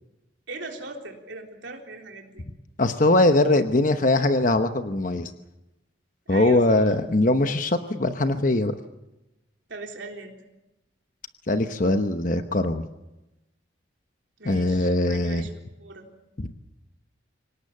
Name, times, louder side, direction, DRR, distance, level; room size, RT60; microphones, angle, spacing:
voice 1, 0.5-2.4 6.3-6.8 9.7-10.4 14.4-15.5 15.8-16.1, right 3 dB, 75° right, 2 dB, 3.8 m, -39 dB
voice 2, 2.8-5.3 6.3-8.7 11.5-12.8 14.4-15.4 16.4-16.5, left 2 dB, 45° left, 8 dB, 1.0 m, -21 dB
25.5 x 18.5 x 8.6 m, 0.98 s
head